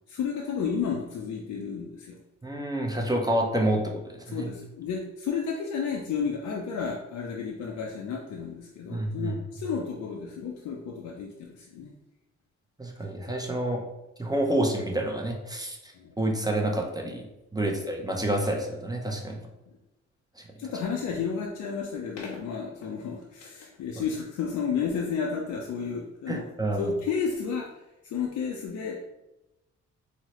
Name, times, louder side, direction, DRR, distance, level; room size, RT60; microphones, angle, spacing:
voice 1, 0.1-2.2 4.3-11.9 15.9-16.1 17.6-17.8 20.6-26.5 26.8-27.7 28.0-29.0, left 6 dB, 70° left, 0 dB, 0.5 m, -32 dB
voice 2, 2.4-4.5 8.9-9.4 12.8-13.8 14.2-17.3 17.5-19.4 24.0-24.1 26.3-26.9, right 1 dB, 15° right, 1 dB, 0.6 m, -28 dB
3.9 x 2.0 x 3.0 m, 0.97 s
cardioid pair, 60°, 30 cm